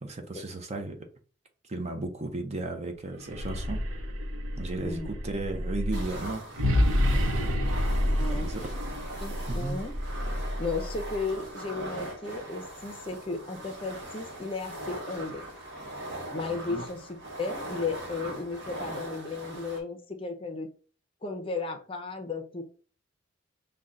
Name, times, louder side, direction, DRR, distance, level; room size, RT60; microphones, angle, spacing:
voice 1, 0.0-1.1 1.7-3.8 4.6-6.5 7.0-7.3 8.3-8.6 9.5-9.8 16.7-16.8, right 2 dB, 30° right, 0.6 m, -35 dB
sound 1, 3.2-11.3, left 1 dB, 80° right, 0.7 m, -29 dB
sound 2, 5.9-19.8, right 1 dB, 55° right, 1.2 m, -40 dB
voice 2, 8.2-8.5 9.2-9.9 10.6-15.5 16.3-20.7 21.2-22.6, left 3 dB, 25° left, 0.6 m, -34 dB
5.3 x 2.2 x 3.7 m
head